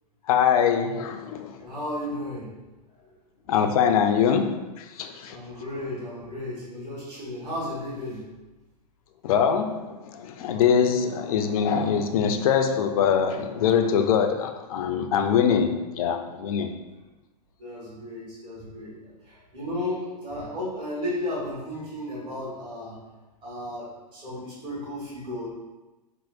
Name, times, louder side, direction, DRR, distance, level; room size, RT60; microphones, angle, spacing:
voice 1, 0.3-1.6 3.5-5.4 9.2-16.7, left 7 dB, 60° left, 6 dB, 0.4 m, -23 dB
voice 2, 1.6-2.5 5.3-8.3 17.6-23.0 23.4-25.5, left 1 dB, 25° right, -7 dB, 1.3 m, -34 dB
4.4 x 2.0 x 2.4 m, 1.1 s
hypercardioid pair, 105°, 21 cm